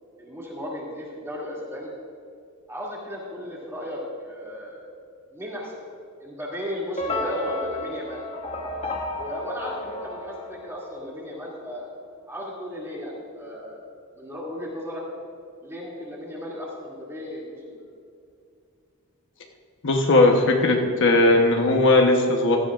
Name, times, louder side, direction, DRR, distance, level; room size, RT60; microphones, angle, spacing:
voice 1, 0.2-1.9 2.7-4.9 5.3-5.9 6.2-8.2 9.2-11.9 12.3-15.0 15.6-17.8, equal, 10° right, -5 dB, 2.6 m, -35 dB
sound 1, 7.0-11.3, left 2 dB, 30° left, 1.0 m, -32 dB
voice 2, 19.8-22.6, left 2 dB, 55° left, 2 dB, 1.1 m, -18 dB
16.5 x 13.5 x 2.5 m, 2.4 s
head